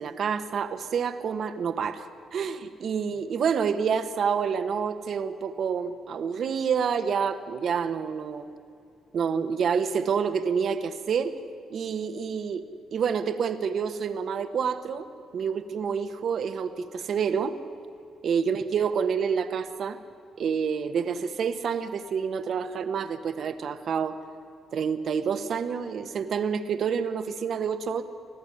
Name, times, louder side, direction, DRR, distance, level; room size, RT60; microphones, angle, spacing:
voice 1, 0.0-8.4 9.1-11.4 11.7-12.6 12.9-15.1 15.3-17.5 18.2-20.0 20.4-24.2 24.7-28.0, right 6 dB, 60° right, 9 dB, 1.3 m, -28 dB
24.5 x 15.0 x 10.0 m, 2.5 s
cardioid pair, 90°, 0 cm